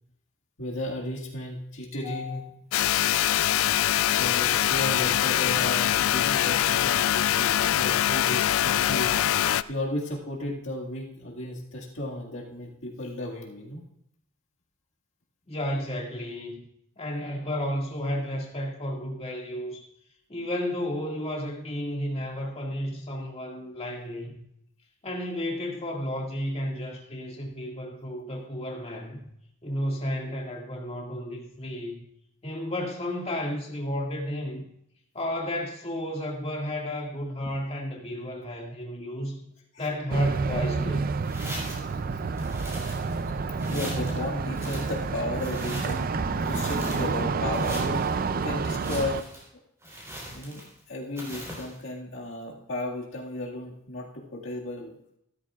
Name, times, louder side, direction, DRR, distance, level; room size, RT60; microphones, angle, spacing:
voice 1, 0.6-2.7 4.2-9.1 9.7-13.8 39.7-39.8 43.7-46.1 46.5-48.0 48.4-49.2 50.3-55.0, left 1 dB, 65° left, -3 dB, 2.0 m, -34 dB
sound 1, 2.7-9.6, left 12 dB, 85° left, 0.3 m, -23 dB
voice 2, 15.5-16.7 17.0-19.9 20.3-24.4 25.0-29.2 29.6-32.0 32.4-34.7 35.1-39.4 39.8-41.1, left 1 dB, 30° left, -1 dB, 2.1 m, -32 dB
sound 2, 40.1-49.2, right 4 dB, 45° right, 0.5 m, -29 dB
sound 3, 41.2-41.9 42.4-43.3 43.6-44.2 44.5-46.1 46.4-47.2 47.5-48.1 48.7-49.4 49.8-50.8 51.2-51.8, equal, 15° right, 4.0 m, -40 dB
15.0 x 13.5 x 2.4 m, 0.75 s
head